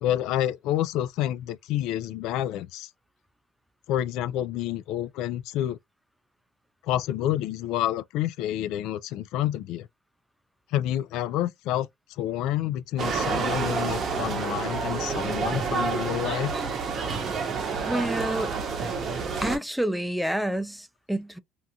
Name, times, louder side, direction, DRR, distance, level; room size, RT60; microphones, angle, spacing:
voice 1, 0.0-2.9 3.9-5.8 6.8-9.9 10.7-11.9 12.2-16.5, left 12 dB, 70° left, 0.3 m, -28 dB
sound 1, 13.0-19.6, right 5 dB, 40° right, 0.7 m, -29 dB
voice 2, 17.9-18.5 19.4-21.4, right 1 dB, 5° right, 0.4 m, -28 dB
2.8 x 2.5 x 2.2 m
cardioid pair, 110°, 0 cm